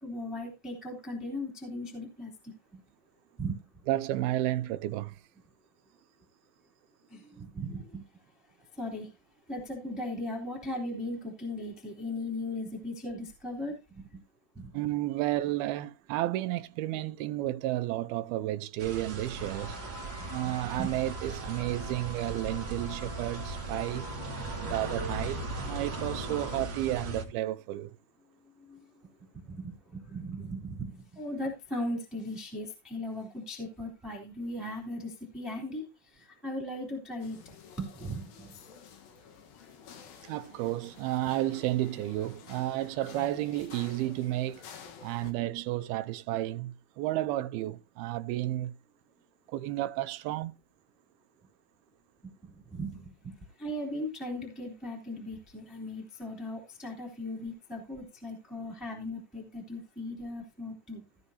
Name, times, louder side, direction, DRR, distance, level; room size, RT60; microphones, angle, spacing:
voice 1, 0.0-2.8 3.4-3.8 7.1-8.0 8.7-9.1 9.5-14.2 14.5-14.7 20.4-20.9 28.6-37.4 37.8-38.6 52.4-61.0, left 1 dB, ahead, 2.6 m, -38 dB
voice 2, 3.9-5.2 14.7-19.8 20.3-24.1 24.5-27.9 40.2-44.6 45.0-48.7 49.5-50.5, right 15 dB, 80° right, 2.6 m, -32 dB
sound 1, 18.8-27.2, right 3 dB, 45° right, 1.6 m, -38 dB
sound 2, 19.4-26.6, equal, 40° left, 8.4 m, -44 dB
sound 3, 37.2-45.3, left 7 dB, 70° left, 3.1 m, -51 dB
16.5 x 7.5 x 2.8 m
omnidirectional pair, 4.4 m